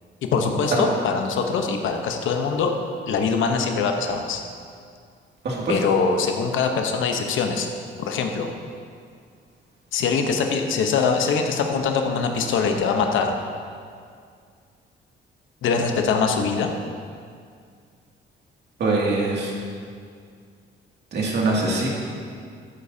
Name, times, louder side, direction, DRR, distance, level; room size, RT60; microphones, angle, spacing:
voice 1, 0.3-2.7 3.1-4.4 5.7-7.7 8.1-8.5 9.9-13.4 15.6-16.7, left 5 dB, 80° left, 4 dB, 0.9 m, -23 dB
voice 2, 5.4-5.8 18.8-19.5 21.1-21.9, right 2 dB, 60° right, -3 dB, 2.4 m, -23 dB
14.0 x 8.6 x 2.8 m, 2.2 s
cardioid pair, 90°, 20 cm